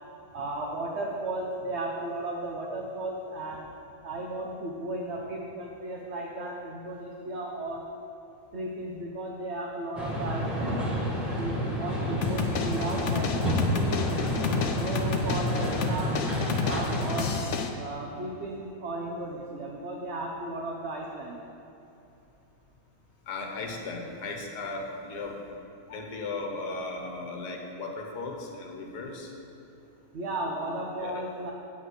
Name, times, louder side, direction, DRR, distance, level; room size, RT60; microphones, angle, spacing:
voice 1, 0.3-3.7 4.0-7.8 8.5-10.8 11.4-16.2 16.6-17.3 17.7-21.4 30.1-31.5, right 2 dB, 50° right, -1 dB, 1.0 m, -35 dB
sound 1, 10.0-17.4, equal, ahead, 1.5 m, -29 dB
sound 2, 12.2-17.7, left 5 dB, 60° left, 0.8 m, -31 dB
voice 2, 23.3-25.4 25.9-29.3 31.0-31.2, left 3 dB, 75° left, 1 dB, 1.7 m, -36 dB
8.5 x 5.6 x 8.0 m, 2.9 s
omnidirectional pair, 1.8 m